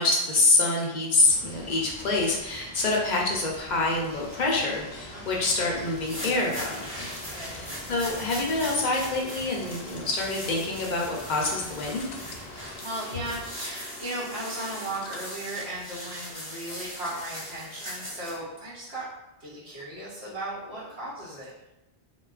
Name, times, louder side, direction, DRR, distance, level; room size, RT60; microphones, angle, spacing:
voice 1, 0.0-6.8 7.5-12.1, left 2 dB, 55° left, -2 dB, 0.6 m, -26 dB
sound 1, 1.2-12.8, right 1 dB, 50° right, 0.7 m, -46 dB
sound 2, 4.2-18.6, left 3 dB, 80° left, 0.9 m, -45 dB
voice 2, 5.1-5.5 7.3-7.7 12.8-19.0 19.4-21.5, right 1 dB, 80° right, -8 dB, 1.0 m, -36 dB
sound 3, 5.8-18.4, equal, 15° right, 0.7 m, -40 dB
3.6 x 2.3 x 2.3 m, 0.98 s
omnidirectional pair, 1.1 m